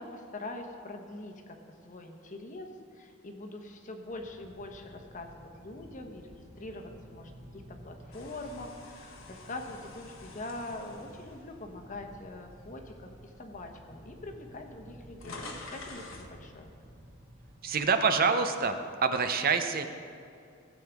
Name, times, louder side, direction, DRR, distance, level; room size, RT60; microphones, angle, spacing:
voice 1, 0.0-1.6 1.8-15.4 15.7-16.7, left 2 dB, 40° left, 4 dB, 1.0 m, -43 dB
sound 1, 4.0-17.7, equal, 30° right, 1.8 m, -53 dB
sound 2, 8.1-12.4 12.9-13.1 14.0-14.1 14.3-16.3, left 3 dB, 70° left, 1.2 m, -48 dB
voice 2, 17.6-19.9, right 5 dB, 45° right, 8 dB, 0.6 m, -26 dB
16.0 x 8.3 x 3.5 m, 2.5 s
head